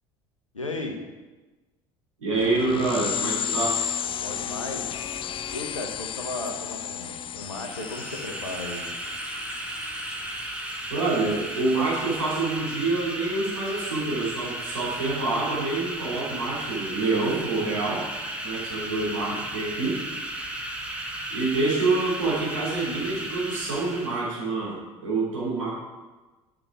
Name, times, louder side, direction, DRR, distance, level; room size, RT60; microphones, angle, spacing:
voice 1, 0.5-1.0 4.2-5.0 5.5-8.9, left 2 dB, 85° left, 3 dB, 1.2 m, -35 dB
voice 2, 2.2-3.8 10.9-18.1 18.4-20.0 21.3-25.7, right 3 dB, 80° right, -6 dB, 3.1 m, -27 dB
sound 1, 2.3-12.5, left 9 dB, 30° left, 0.5 m, -34 dB
sound 2, 7.4-24.3, right 1 dB, 5° right, 1.6 m, -35 dB
11.0 x 6.2 x 4.9 m, 1.2 s
figure-of-eight pair, 60°, 16 cm